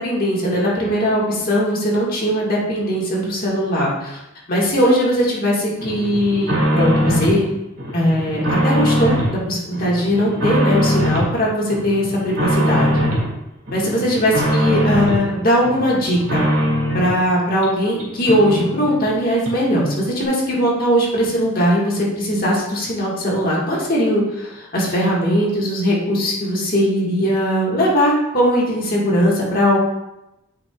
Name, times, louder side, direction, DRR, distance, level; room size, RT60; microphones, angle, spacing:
voice 1, 0.0-4.2 4.5-7.4 7.9-12.9 13.7-16.4 16.9-29.8, equal, 45° left, -4 dB, 1.7 m, -19 dB
sound 1, 5.8-7.4 7.8-9.4 9.7-11.3 11.7-13.3 13.7-15.2 15.6-17.2 17.6-17.7 18.0-18.1 18.3-19.1 19.4-19.5, equal, 65° right, 2.3 m, -21 dB
9.5 x 5.7 x 2.4 m, 0.91 s
head